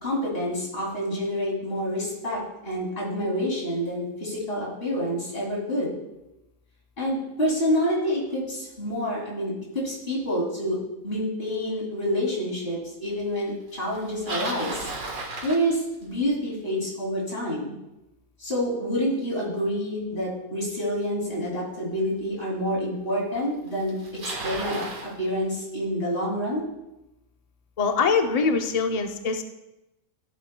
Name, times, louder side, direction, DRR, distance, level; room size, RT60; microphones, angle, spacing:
voice 1, 0.0-5.9 7.0-10.8 11.0-14.9 15.4-17.7 18.4-24.0 24.2-26.6, equal, 40° left, -4 dB, 3.0 m, -28 dB
Bicycle, 13.9-16.3 21.3-21.4 22.2-22.3 23.4-23.5 23.7-25.1, right 3 dB, 65° right, 1.9 m, -34 dB
voice 2, 27.8-29.4, left 5 dB, 75° left, 5 dB, 0.3 m, -23 dB
14.0 x 7.8 x 2.2 m, 0.95 s
omnidirectional pair, 1.6 m